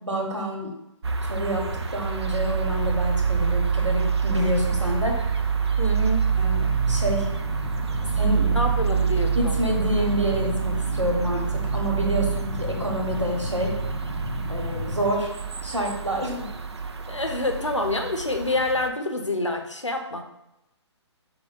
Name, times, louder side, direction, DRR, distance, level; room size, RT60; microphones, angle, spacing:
voice 1, 0.0-0.7 1.2-1.7 1.9-5.3 6.4-7.3 8.1-8.6 9.3-11.5 11.7-13.7 14.5-15.3 15.6-16.5, equal, 90° right, 0 dB, 1.2 m, -27 dB
sound 1, 1.0-18.9, right 7 dB, 65° right, 0.4 m, -26 dB
sound 2, 1.7-12.0, right 3 dB, ahead, 0.3 m, -39 dB
voice 2, 5.8-6.3 8.5-9.6 17.1-20.2, left 1 dB, 90° left, 4 dB, 0.8 m, -27 dB
sound 3, 6.6-15.2, left 4 dB, 55° left, 0.6 m, -34 dB
5.9 x 2.3 x 4.0 m, 0.88 s
figure-of-eight pair, 135°, 15 cm